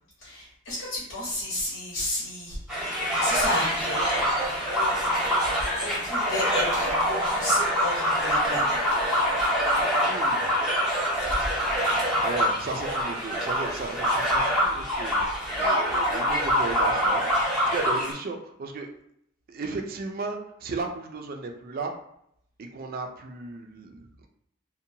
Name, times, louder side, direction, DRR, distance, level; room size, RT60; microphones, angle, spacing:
voice 1, 0.2-4.0 4.7-4.9 5.8-9.0, left 1 dB, 80° left, -9 dB, 1.0 m, -32 dB
sound 1, 2.7-18.1, equal, ahead, 0.7 m, -25 dB
voice 2, 10.0-10.5 12.2-17.2 17.7-18.9 19.5-21.9 22.6-24.3, right 3 dB, 45° right, 4 dB, 0.4 m, -35 dB
2.6 x 2.2 x 2.7 m, 0.73 s
head